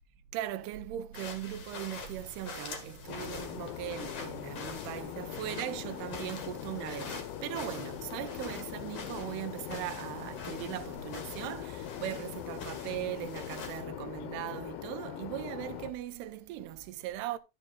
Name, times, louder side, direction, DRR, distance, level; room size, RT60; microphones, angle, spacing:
voice 1, 0.3-17.4, right 13 dB, 80° right, 2.7 m, -39 dB
sound 1, 1.1-13.8, left 4 dB, 45° left, 2.3 m, -45 dB
sound 2, 3.1-15.9, left 13 dB, 80° left, 2.8 m, -42 dB
11.5 x 6.3 x 3.7 m
omnidirectional pair, 4.9 m